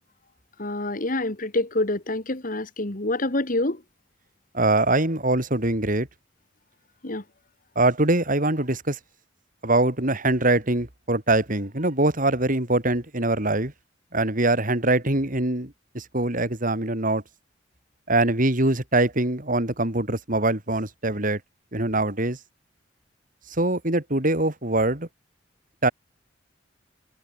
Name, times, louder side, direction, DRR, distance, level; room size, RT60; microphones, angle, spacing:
voice 1, 0.6-3.8 7.0-7.2, left 2 dB, 50° left, 2.2 m, -26 dB
voice 2, 4.5-6.1 7.8-9.0 9.6-13.7 14.1-17.2 18.1-21.4 21.7-22.4 23.6-25.1 25.8-25.9, right 2 dB, 45° right, 4.1 m, -23 dB
head